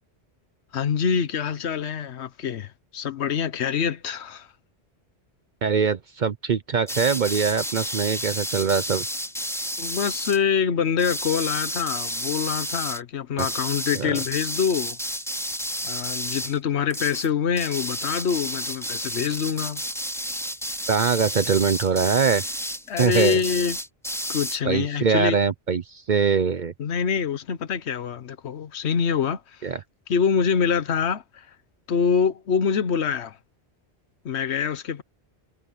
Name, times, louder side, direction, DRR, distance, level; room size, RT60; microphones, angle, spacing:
voice 1, 0.7-4.5 9.8-15.0 15.8-19.8 22.9-23.8 24.3-25.4 26.8-29.7 30.1-31.5 31.9-33.4 34.2-35.0, left 7 dB, 85° left, 1.2 m, -25 dB
voice 2, 5.6-9.1 13.4-13.5 14.0-14.2 20.9-22.4 23.0-23.4 24.6-26.7 29.6-29.8, right 6 dB, 50° right, 0.8 m, -23 dB
sound 1, 6.9-10.4 11.0-13.0 13.4-16.6 16.9-17.3 17.6-24.6, equal, ahead, 4.4 m, -31 dB
omnidirectional pair, 1.1 m